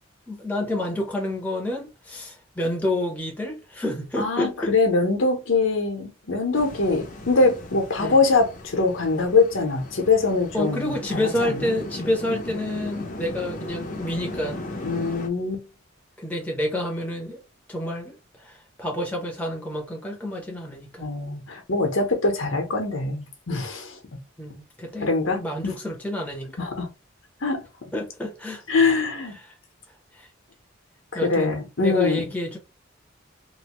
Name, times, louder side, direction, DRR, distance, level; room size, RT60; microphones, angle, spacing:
voice 1, 0.3-4.7 8.0-8.2 10.5-14.6 16.2-17.4 17.7-21.1 24.4-26.7 27.9-28.6 29.4-29.6 30.1-30.3 31.1-31.6 31.8-32.6, left 1 dB, 5° left, 0.8 m, -29 dB
voice 2, 4.2-11.7 14.8-15.6 21.0-24.0 25.0-25.8 26.6-26.9 27.4-27.6 28.7-29.4 31.1-32.2, left 3 dB, 70° left, 0.9 m, -23 dB
sound 1, 6.5-15.3, left 2 dB, 40° left, 0.7 m, -37 dB
3.1 x 2.6 x 3.0 m
head